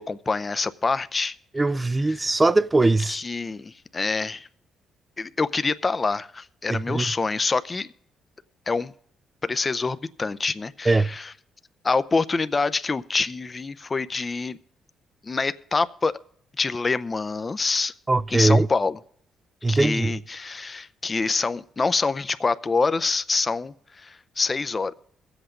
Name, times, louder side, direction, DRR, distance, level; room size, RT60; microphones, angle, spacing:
voice 1, 0.0-1.4 2.1-2.3 3.1-4.5 5.2-7.9 8.7-8.9 9.4-11.3 11.8-14.6 15.2-16.1 16.6-17.9 18.3-19.0 19.7-24.9, left 4 dB, 30° left, 0.6 m, -26 dB
voice 2, 1.5-3.2 6.7-7.1 10.9-11.1 18.1-18.7 19.6-20.2, right 2 dB, 20° right, 0.4 m, -21 dB
22.0 x 8.0 x 3.8 m
cardioid pair, 90°, 0 cm